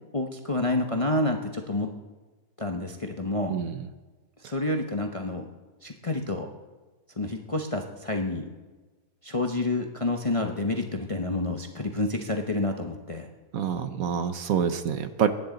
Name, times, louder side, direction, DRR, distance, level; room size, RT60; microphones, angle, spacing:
voice 1, 0.1-1.9 2.6-3.6 4.4-5.5 5.8-6.5 7.2-8.5 9.2-13.3, left 2 dB, 25° left, 3 dB, 0.8 m, -29 dB
voice 2, 13.5-15.3, right 7 dB, 65° right, 9 dB, 1.2 m, -26 dB
23.0 x 10.5 x 3.9 m, 1.3 s
omnidirectional pair, 1.7 m